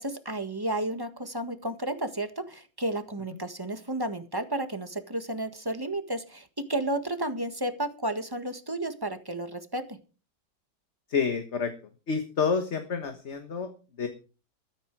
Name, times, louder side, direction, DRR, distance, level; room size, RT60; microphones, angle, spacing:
voice 1, 0.0-10.0, right 1 dB, 15° right, 8 dB, 1.5 m, -32 dB
voice 2, 11.1-11.7 12.1-13.7 14.0-14.1, left 5 dB, 40° left, 7 dB, 1.5 m, -28 dB
14.0 x 13.0 x 4.7 m, 0.35 s
omnidirectional pair, 1.9 m